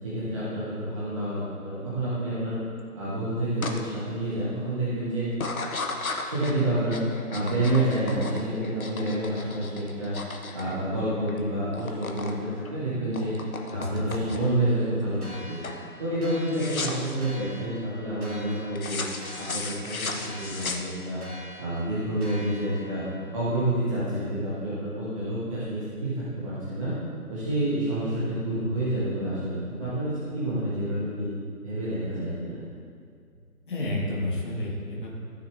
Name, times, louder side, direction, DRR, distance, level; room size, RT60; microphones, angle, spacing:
voice 1, 0.0-2.6 2.9-5.3 6.2-10.1 10.5-13.3 13.7-15.6 16.0-19.0 19.4-21.2 21.6-23.1 23.3-26.9 27.3-31.3 31.6-32.6, right 1 dB, 20° right, -10 dB, 1.3 m, -28 dB
sound 1, 3.6-3.8 4.2-4.7 5.3-11.4 11.6-12.4 12.7-14.6 15.1-15.4 15.6-15.9 16.5-17.1 18.8-21.3, left 3 dB, 65° left, 1.1 m, -35 dB
voice 2, 13.7-14.3 33.7-35.1, left 1 dB, 35° left, -4 dB, 1.6 m, -31 dB
sound 2, 15.2-23.4, left 1 dB, 70° right, 2.6 m, -45 dB
14.5 x 6.5 x 3.3 m, 2.2 s
figure-of-eight pair, 160°, 45 cm